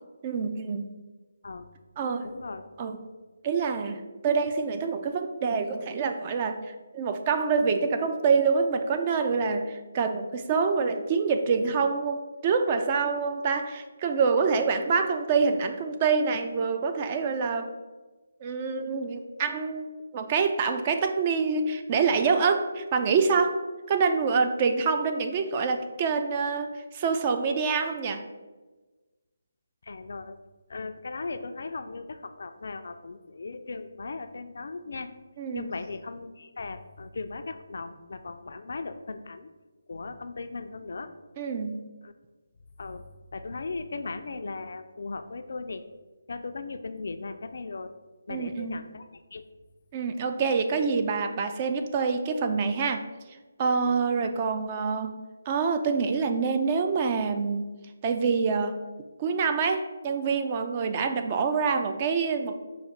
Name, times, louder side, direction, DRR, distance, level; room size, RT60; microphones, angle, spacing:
voice 1, 0.2-0.9 2.0-2.3 2.8-3.0 3.4-17.7 18.4-23.6 23.9-28.2 35.4-35.7 41.4-41.8 48.3-48.9 49.9-53.0 53.6-55.1 55.5-57.7 58.0-58.8 59.2-62.6, right 5 dB, 30° right, 6 dB, 0.3 m, -26 dB
voice 2, 2.2-2.7 29.8-30.4 30.7-35.1 35.5-39.5 39.9-41.1 42.0-42.1 42.8-43.0 43.3-45.8 46.3-47.9 48.3-49.4, left 3 dB, 65° left, 9 dB, 0.3 m, -37 dB
4.8 x 2.1 x 4.4 m, 1.2 s
figure-of-eight pair, 155°, 0 cm